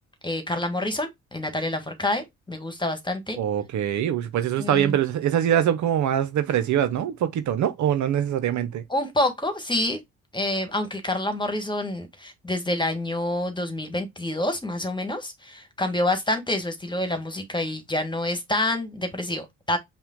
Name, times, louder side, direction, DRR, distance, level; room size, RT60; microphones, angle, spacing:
voice 1, 0.2-3.4 4.6-5.0 8.9-10.0 10.3-19.8, left 1 dB, 15° left, 1.6 m, -27 dB
voice 2, 3.4-8.8, right 10 dB, 55° right, 0.7 m, -23 dB
5.6 x 2.2 x 3.7 m
hypercardioid pair, 50°, 34 cm